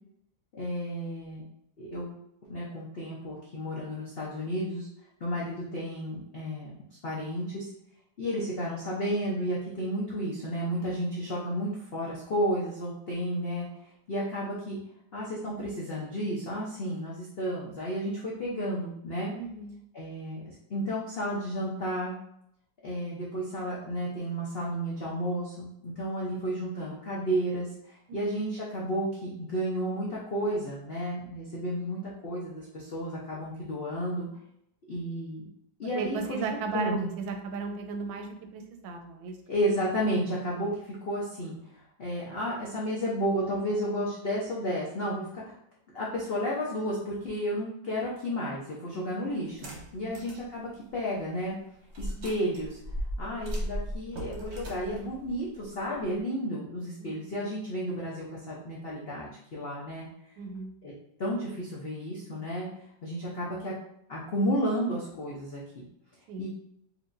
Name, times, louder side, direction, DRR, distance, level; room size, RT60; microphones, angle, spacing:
voice 1, 0.5-1.4 1.8-2.1 2.5-4.9 5.2-6.7 7.0-7.7 8.2-13.7 14.1-14.8 15.1-19.3 19.9-22.2 22.8-34.3 34.9-35.4 35.8-37.1 39.5-41.6 42.0-45.6 45.9-51.6 52.0-52.8 53.2-60.1 60.8-60.9 61.2-62.7 63.0-63.7 64.1-65.8 66.4-66.5, equal, 80° left, -5 dB, 0.5 m, -32 dB
voice 2, 19.4-19.8 28.1-28.2 35.9-39.4 48.9-49.0 50.0-50.1 52.1-52.3 57.0-57.1 60.4-60.7 66.3-66.4, right 4 dB, 85° right, 5 dB, 1.4 m, -35 dB
sound 1, 49.5-50.5 50.9-51.0 51.9-56.2, equal, 50° right, 0.9 m, -37 dB
4.5 x 2.7 x 2.5 m, 0.74 s
omnidirectional pair, 2.0 m